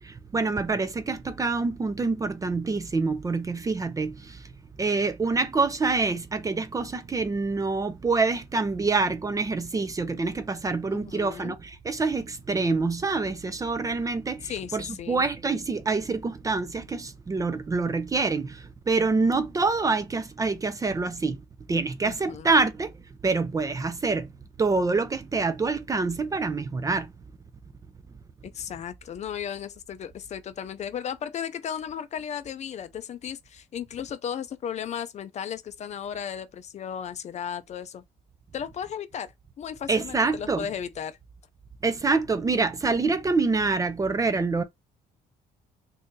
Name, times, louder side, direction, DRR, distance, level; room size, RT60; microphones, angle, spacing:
voice 1, 0.0-4.4 4.8-21.4 21.7-22.9 23.2-24.3 24.6-27.1 39.9-40.7 41.8-44.6, right 3 dB, 20° right, 0.4 m, -26 dB
voice 2, 10.9-11.5 14.4-15.3 22.0-22.5 28.4-38.0 38.5-41.2, left 8 dB, 40° left, 0.4 m, -35 dB
2.7 x 2.6 x 3.6 m
cardioid pair, 110°, 17 cm